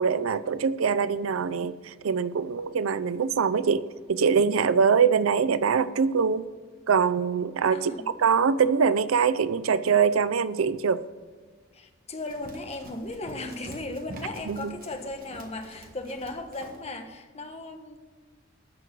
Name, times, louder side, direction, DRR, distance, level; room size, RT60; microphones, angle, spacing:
voice 1, 0.0-6.5 6.9-7.9 8.2-11.0 14.5-14.7, right 6 dB, 90° right, 15 dB, 0.5 m, -23 dB
voice 2, 7.7-8.1 11.7-18.0, left 2 dB, 30° left, 6 dB, 1.1 m, -37 dB
Run, 12.2-16.9, right 1 dB, 45° right, 1.6 m, -46 dB
13.5 x 4.7 x 7.8 m, 1.5 s
head